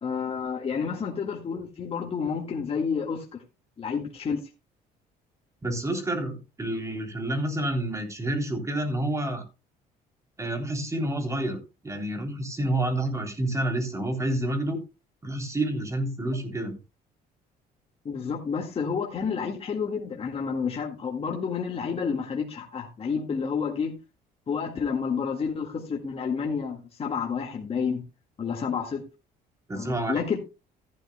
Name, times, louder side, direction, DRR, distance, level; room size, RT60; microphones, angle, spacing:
voice 1, 0.0-3.2 3.8-4.4 18.0-24.0 24.5-28.0 28.4-29.0 29.7-30.4, left 6 dB, 35° left, 2.0 m, -30 dB
voice 2, 5.6-9.4 10.4-14.8 15.2-16.8 29.7-30.4, right 1 dB, 15° right, 3.3 m, -29 dB
14.0 x 11.5 x 2.2 m
cardioid pair, 110°, 17 cm